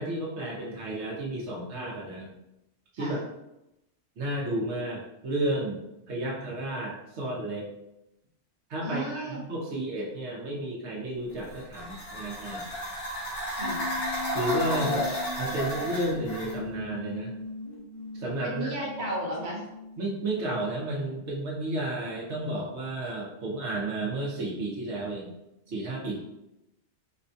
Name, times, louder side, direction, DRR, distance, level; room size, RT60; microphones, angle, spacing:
voice 1, 0.0-2.3 3.0-3.2 4.2-5.8 6.1-7.7 8.7-12.7 14.3-15.0 15.4-17.3 18.1-18.7 20.0-25.3 25.7-26.2, right 1 dB, 75° right, -3 dB, 1.0 m, -32 dB
voice 2, 8.8-9.4 13.5-13.9 14.7-15.1 18.4-19.6, right 1 dB, 45° right, -3 dB, 1.0 m, -34 dB
sound 1, 11.3-16.6, equal, 90° left, 1.3 m, -33 dB
sound 2, 13.6-20.3, left 3 dB, 60° left, 0.3 m, -40 dB
4.4 x 2.2 x 2.6 m, 0.88 s
omnidirectional pair, 1.2 m